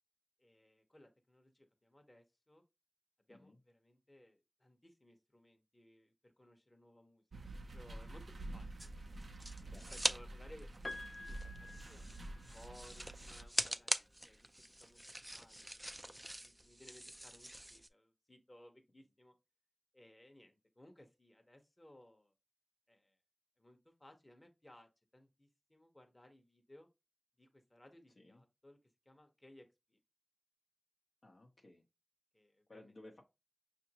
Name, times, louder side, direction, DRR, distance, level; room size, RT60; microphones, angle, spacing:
voice 1, 0.4-2.6 3.3-7.2 7.7-10.7 11.2-11.5 11.8-13.9 14.2-19.3 19.9-22.3 22.9-23.2 23.6-26.9 27.4-28.8 29.0-30.0 32.3-33.0, left 1 dB, 30° left, 0.9 m, -62 dB
sound 1, 7.3-13.5, right 2 dB, 85° right, 0.5 m, -49 dB
sound 2, 8.8-10.2 10.5-17.9, right 1 dB, 15° right, 0.3 m, -42 dB
voice 2, 9.7-10.0 28.2-28.4 31.2-31.8 32.7-33.2, left 2 dB, 70° left, 0.9 m, -58 dB
Piano, 10.8-12.8 14.1-14.2, left 2 dB, 50° left, 0.5 m, -49 dB
5.6 x 2.6 x 2.8 m
cardioid pair, 40°, 0 cm